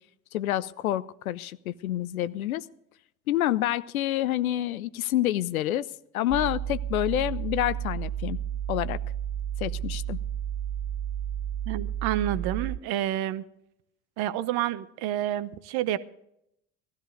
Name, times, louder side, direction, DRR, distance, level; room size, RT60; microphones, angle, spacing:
voice 1, 0.3-2.7 3.3-5.9 6.1-8.4 8.7-9.0 9.6-10.2, left 13 dB, 85° left, 17 dB, 0.6 m, -28 dB
sound 1, 6.3-12.8, right 10 dB, 25° right, 0.7 m, -32 dB
voice 2, 11.7-13.4 14.2-16.0, right 12 dB, 60° right, 15 dB, 0.9 m, -29 dB
17.0 x 13.5 x 3.8 m, 0.78 s
hypercardioid pair, 55°, 41 cm